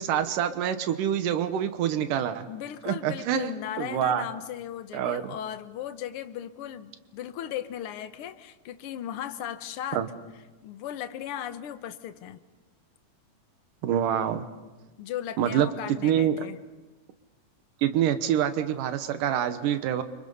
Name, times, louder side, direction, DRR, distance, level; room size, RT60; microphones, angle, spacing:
voice 1, 0.0-2.4 2.8-4.3 4.9-5.3 9.9-10.1 13.8-14.4 15.4-15.7 16.0-16.4 17.8-20.0, right 10 dB, 85° right, 10 dB, 2.7 m, -26 dB
voice 2, 2.5-10.0 10.6-12.4 15.0-16.6, left 10 dB, 65° left, 9 dB, 1.5 m, -37 dB
30.0 x 26.0 x 5.5 m, 1.2 s
omnidirectional pair, 3.7 m